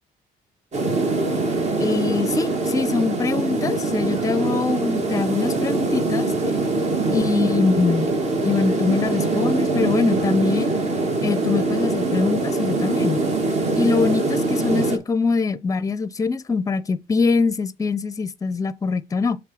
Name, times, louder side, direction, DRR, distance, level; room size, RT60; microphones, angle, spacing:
sound 1, 0.7-15.0, right 3 dB, 40° right, 2.1 m, -23 dB
voice 1, 1.8-6.3 7.1-8.1 8.4-10.7 11.2-13.2 13.7-19.4, left 4 dB, 20° left, 0.6 m, -23 dB
7.4 x 3.6 x 6.2 m
cardioid pair, 110°, 17 cm